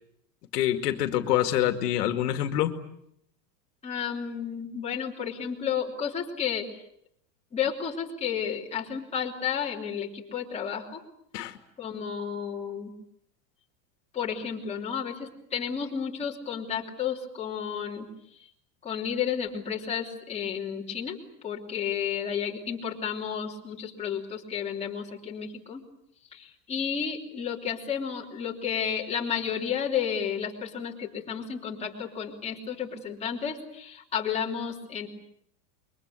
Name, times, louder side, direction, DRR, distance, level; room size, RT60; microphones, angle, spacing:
voice 1, 0.5-2.8 11.3-11.6, left 12 dB, 70° left, 7 dB, 2.3 m, -26 dB
voice 2, 3.8-6.7 7.5-11.0 11.8-12.9 14.1-18.1 18.8-21.2 21.4-25.8 26.3-35.1, left 7 dB, 15° left, -3 dB, 3.2 m, -32 dB
27.5 x 23.0 x 8.2 m, 0.72 s
supercardioid pair, 165°, 49 cm